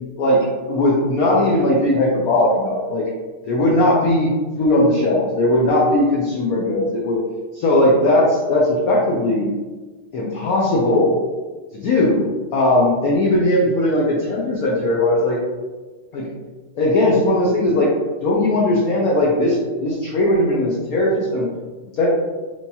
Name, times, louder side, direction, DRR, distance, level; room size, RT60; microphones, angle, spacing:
voice 1, 0.2-3.0 3.4-4.3 4.6-7.2 7.5-9.5 10.1-11.2 11.7-12.2 12.5-15.4 16.1-16.3 16.8-17.9 18.2-21.5 22.0-22.1, left 1 dB, 90° left, -4 dB, 0.7 m, -18 dB
3.4 x 3.1 x 2.7 m, 1.3 s
omnidirectional pair, 2.3 m